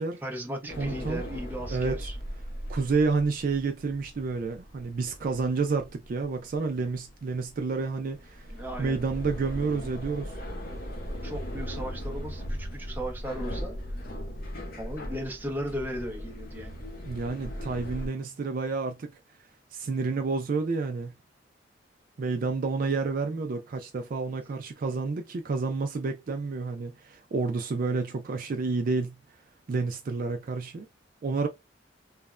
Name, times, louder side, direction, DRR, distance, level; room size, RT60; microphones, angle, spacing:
voice 1, 0.2-2.2 8.5-9.0 11.2-13.7 14.8-16.8, equal, 10° right, 0.6 m, -36 dB
sound 1, 0.7-18.1, equal, 50° left, 0.6 m, -38 dB
voice 2, 0.8-1.2 1.7-2.1 2.7-8.5 8.8-10.4 17.1-19.1 19.7-21.1 22.2-29.1 29.7-30.9 31.2-31.5, right 4 dB, 45° right, 0.3 m, -29 dB
3.2 x 2.1 x 2.3 m
head